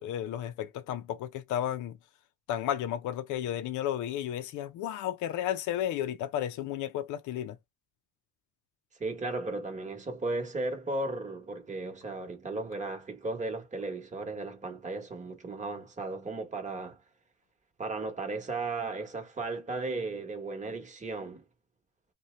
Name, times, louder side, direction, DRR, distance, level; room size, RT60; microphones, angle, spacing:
voice 1, 0.0-2.0 2.5-7.6, left 11 dB, 75° left, 0.5 m, -33 dB
voice 2, 9.0-17.0 17.8-21.4, right 3 dB, 25° right, 1.1 m, -35 dB
2.7 x 2.2 x 3.1 m
cardioid pair, 90°, 30 cm